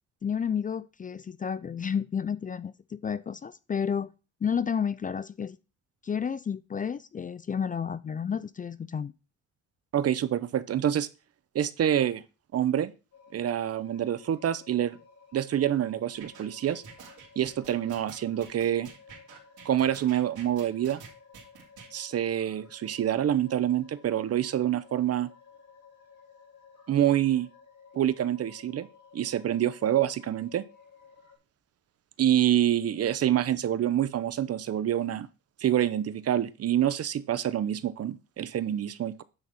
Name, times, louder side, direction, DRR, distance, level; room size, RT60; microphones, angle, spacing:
voice 1, 0.2-4.1 4.4-5.6 6.0-9.1, left 7 dB, 25° left, 0.4 m, -31 dB
voice 2, 9.9-11.1 11.5-12.2 12.5-12.9 13.3-15.0 15.3-16.8 17.4-18.9 19.6-21.0 21.9-25.3 26.9-27.5 27.9-28.9 29.1-30.6 32.2-35.3 35.6-39.2, right 11 dB, 55° right, 0.8 m, -26 dB
sound 1, 13.1-31.4, left 6 dB, 75° left, 5.0 m, -55 dB
sound 2, 16.2-21.9, right 6 dB, 80° right, 3.1 m, -48 dB
9.7 x 4.1 x 5.9 m
cardioid pair, 90°, 30 cm